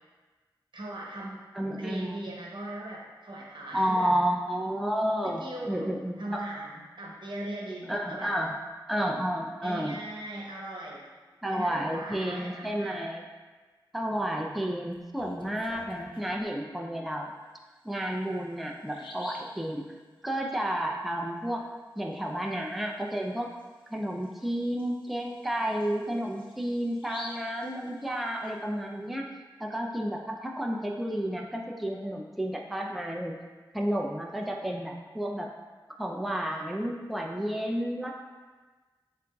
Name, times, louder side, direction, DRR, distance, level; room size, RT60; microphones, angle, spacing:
voice 1, 0.7-1.4 1.8-4.1 5.2-8.3 9.6-11.1 11.5-12.9, right 1 dB, 70° right, -3 dB, 0.9 m, -39 dB
voice 2, 1.5-2.2 3.7-6.4 7.9-8.5 8.9-10.0 11.4-13.2 13.9-17.3 17.8-19.8 20.2-21.6 22.0-23.5 23.9-29.3 29.6-33.4 33.7-35.5 36.0-38.1, equal, ahead, 0 dB, 0.4 m, -31 dB
Bird vocalization bird call bird song, 14.9-16.4 17.9-18.0 18.4-18.5 18.9-19.6 23.1-23.2 23.6-23.7 24.2-28.5, left 2 dB, 80° left, 0.5 m, -48 dB
7.4 x 2.6 x 2.3 m, 1.3 s
wide cardioid pair, 60°, 8 cm